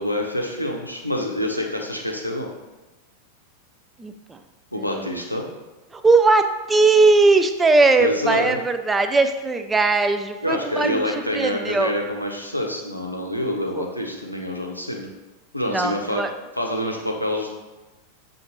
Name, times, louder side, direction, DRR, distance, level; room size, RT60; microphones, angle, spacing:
voice 1, 0.0-2.5 4.7-5.5 8.0-8.6 10.4-15.1 15.5-16.2 16.6-17.5, left 1 dB, 90° left, 0 dB, 0.6 m, -26 dB
voice 2, 4.0-4.4 4.8-5.1 5.9-11.1 11.3-11.9 13.7-13.8 15.7-16.3, right 3 dB, 10° right, 8 dB, 0.3 m, -19 dB
6.3 x 2.5 x 2.8 m, 1.1 s
figure-of-eight pair, 90°, 0 cm